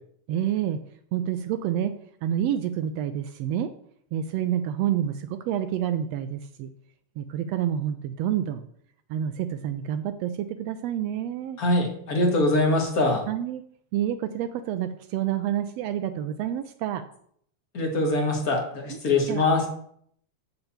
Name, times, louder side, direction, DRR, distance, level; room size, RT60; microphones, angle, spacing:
voice 1, 0.3-0.8 1.1-1.9 2.2-3.7 4.1-6.7 7.2-8.7 9.1-11.6 13.3-13.6 13.9-17.0 18.9-19.0 19.3-19.4, right 10 dB, 80° right, 10 dB, 1.5 m, -28 dB
voice 2, 11.6-13.2 17.7-19.6, left 2 dB, 35° left, 2 dB, 1.6 m, -23 dB
8.7 x 4.0 x 7.1 m, 0.65 s
omnidirectional pair, 3.3 m